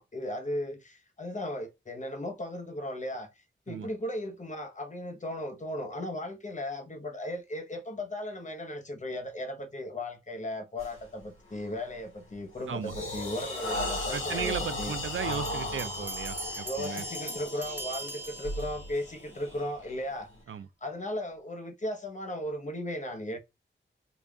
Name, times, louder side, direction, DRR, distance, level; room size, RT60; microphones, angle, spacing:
voice 1, 0.0-3.3 3.7-14.9 16.6-20.3 20.8-23.4, left 1 dB, 35° left, 0.9 m, -36 dB
sound 1, 10.8-11.0 11.5-11.8 12.3-20.4, left 2 dB, 90° left, 2.1 m, -37 dB
voice 2, 14.1-17.0 20.5-20.7, right 7 dB, 75° right, 0.4 m, -35 dB
Bell, 15.3-19.1, right 2 dB, 10° right, 0.8 m, -40 dB
3.9 x 2.4 x 3.4 m
wide cardioid pair, 80°, 21 cm